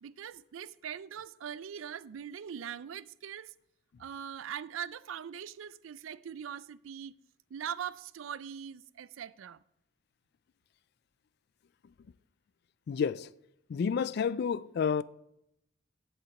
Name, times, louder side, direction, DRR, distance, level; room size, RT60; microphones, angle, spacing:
voice 1, 0.0-3.5 4.0-7.1 7.5-9.6, right 8 dB, 80° right, 0.4 m, -41 dB
voice 2, 12.9-13.3 13.7-15.0, left 6 dB, 55° left, 0.3 m, -30 dB
8.2 x 7.4 x 5.8 m
head